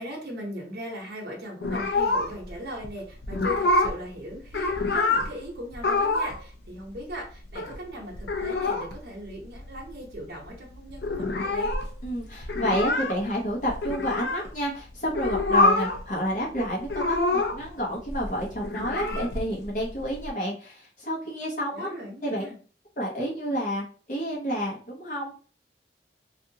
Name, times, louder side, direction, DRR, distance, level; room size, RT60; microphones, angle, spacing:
voice 1, 0.0-11.7 21.7-22.6, equal, 60° right, -2 dB, 0.8 m, -39 dB
sound 1, 1.6-2.6 2.8-2.9 3.2-4.0 4.3-5.3 5.7-6.4 6.7-6.8 6.9-7.8 8.1-9.0 9.3-9.4 9.5-10.1 10.4-10.5 10.7-14.5 15.0-16.0 16.3-17.7 18.0-20.3, left 2 dB, 65° left, 0.5 m, -26 dB
voice 2, 12.0-21.9 22.2-22.5 23.0-25.4, equal, 45° left, -3 dB, 0.9 m, -30 dB
2.6 x 2.4 x 2.7 m, 0.40 s
head